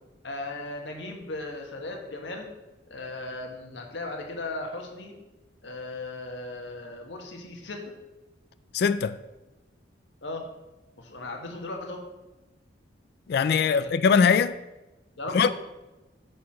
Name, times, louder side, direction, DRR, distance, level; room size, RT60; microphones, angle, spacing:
voice 1, 0.2-2.5 2.9-5.2 5.6-7.8 10.2-10.5 11.0-12.0 13.7-13.9 15.2-15.5, left 2 dB, 80° left, 1.6 m, -37 dB
voice 2, 8.7-9.2 13.3-14.5 15.3-15.5, left 6 dB, 60° left, 0.3 m, -21 dB
8.1 x 4.7 x 6.2 m
head